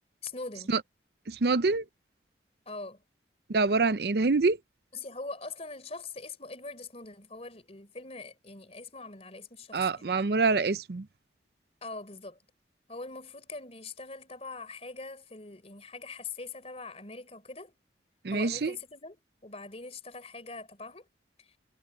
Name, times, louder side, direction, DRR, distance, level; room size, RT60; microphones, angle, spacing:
voice 1, 0.2-0.8 2.7-3.0 4.9-10.1 11.8-12.4 12.9-17.7 18.3-21.1 21.4-21.5, left 3 dB, 35° left, 3.9 m, -42 dB
voice 2, 1.3-1.8 3.5-4.6 9.7-11.1 18.2-18.7, right 3 dB, 60° right, 0.6 m, -26 dB
head